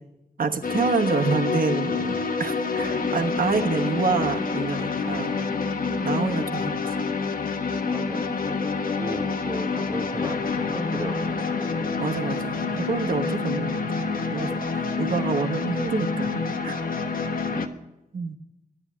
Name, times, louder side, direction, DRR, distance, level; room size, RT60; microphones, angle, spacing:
voice 1, 0.4-5.4 6.0-7.0 12.0-13.8 14.3-16.8 18.1-18.4, right 4 dB, 80° right, 4 dB, 1.2 m, -27 dB
sound 1, 0.6-17.7, left 4 dB, 75° left, 1.2 m, -27 dB
voice 2, 7.9-11.8 14.3-14.7, right 1 dB, 15° right, 10 dB, 0.8 m, -37 dB
11.5 x 9.7 x 8.6 m, 0.91 s
wide cardioid pair, 110°, 15 cm